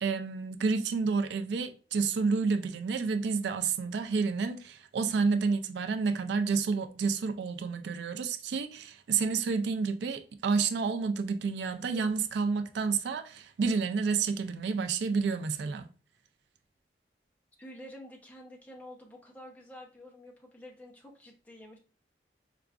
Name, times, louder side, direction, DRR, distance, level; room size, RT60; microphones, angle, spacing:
voice 1, 0.0-15.9, right 5 dB, 75° right, 0.3 m, -30 dB
voice 2, 17.6-21.8, left 1 dB, 10° left, 0.6 m, -49 dB
4.7 x 2.4 x 2.3 m
head